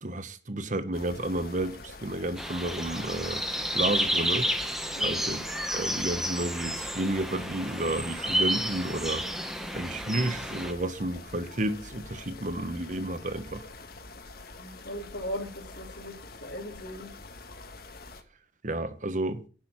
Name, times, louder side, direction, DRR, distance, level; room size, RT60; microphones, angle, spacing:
voice 1, 0.0-3.4 3.7-4.5 5.0-5.4 5.7-13.7 18.6-19.4, right 1 dB, 45° right, 1.2 m, -31 dB
sound 1, 0.9-18.2, left 3 dB, 55° left, 1.5 m, -46 dB
sound 2, 2.4-10.7, right 1 dB, ahead, 1.1 m, -31 dB
voice 2, 5.0-5.3 14.6-17.2, equal, 75° left, 3.5 m, -38 dB
10.5 x 6.3 x 8.8 m
head